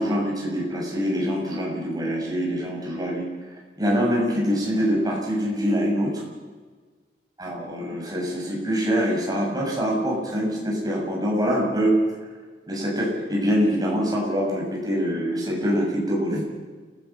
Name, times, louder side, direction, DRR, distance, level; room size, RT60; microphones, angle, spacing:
voice 1, 0.0-3.3 3.8-6.2 7.4-12.0 12.7-16.4, equal, 20° right, -3 dB, 7.1 m, -24 dB
29.0 x 16.0 x 6.0 m, 1.4 s
head